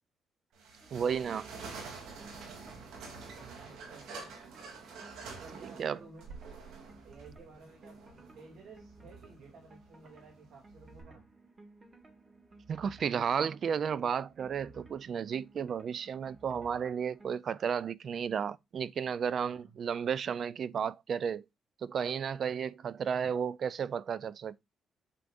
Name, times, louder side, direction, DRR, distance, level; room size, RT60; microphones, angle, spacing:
sound 1, 0.5-11.0, right 4 dB, 90° right, 3.0 m, -48 dB
sound 2, 0.8-17.4, right 3 dB, 30° right, 1.8 m, -57 dB
voice 1, 0.9-1.5 5.8-6.0 12.7-21.4 21.8-24.6, right 7 dB, 55° right, 0.5 m, -33 dB
voice 2, 3.2-4.3 5.4-6.3 7.0-8.0 8.3-11.2 19.4-19.7, right 4 dB, 70° right, 2.9 m, -54 dB
8.2 x 7.7 x 2.6 m
cardioid pair, 90°, 0 cm